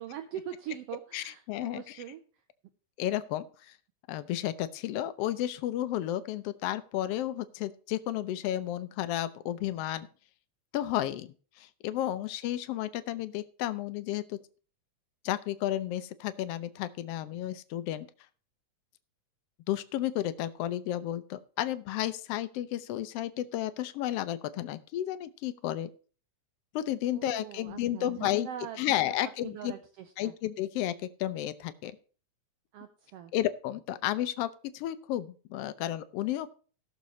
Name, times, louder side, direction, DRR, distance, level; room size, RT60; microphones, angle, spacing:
voice 1, 0.0-2.2 27.1-29.1 29.4-30.3 32.7-33.3, right 10 dB, 75° right, 7 dB, 1.5 m, -42 dB
voice 2, 1.1-2.0 3.0-3.7 4.1-10.1 10.7-14.4 15.2-18.1 19.7-25.9 26.7-28.5 28.8-29.7 30.2-30.9 31.2-32.0 33.3-34.5 34.7-36.5, left 13 dB, 75° left, 13 dB, 1.5 m, -32 dB
18.0 x 6.7 x 3.1 m, 0.39 s
omnidirectional pair, 3.3 m